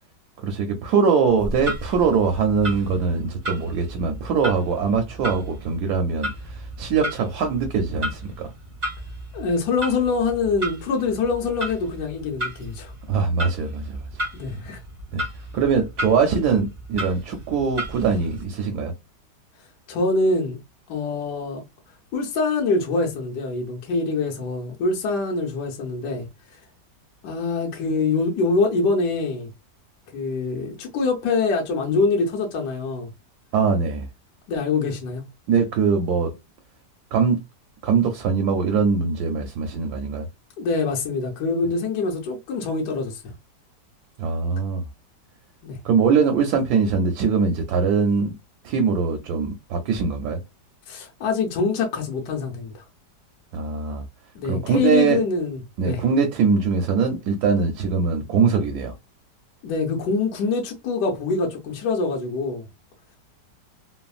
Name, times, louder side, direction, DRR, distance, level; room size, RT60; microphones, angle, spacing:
voice 1, 0.4-8.5 13.1-14.1 15.1-15.2 15.5-18.9 33.5-34.1 35.5-36.3 37.1-37.4 37.8-40.3 44.2-44.8 45.8-48.3 48.6-50.4 53.5-54.0 54.4-55.2 55.8-58.9, right 5 dB, 70° right, 1.0 m, -22 dB
Clock, 1.3-18.4, equal, 45° right, 0.8 m, -34 dB
voice 2, 9.3-12.9 14.3-14.8 19.9-20.6 20.9-21.6 22.1-26.3 27.2-29.5 30.1-33.1 34.5-35.2 40.6-43.3 45.6-45.8 50.9-52.7 54.3-56.0 59.6-62.6, left 3 dB, 75° left, 1.2 m, -24 dB
3.2 x 2.1 x 2.3 m
omnidirectional pair, 1.9 m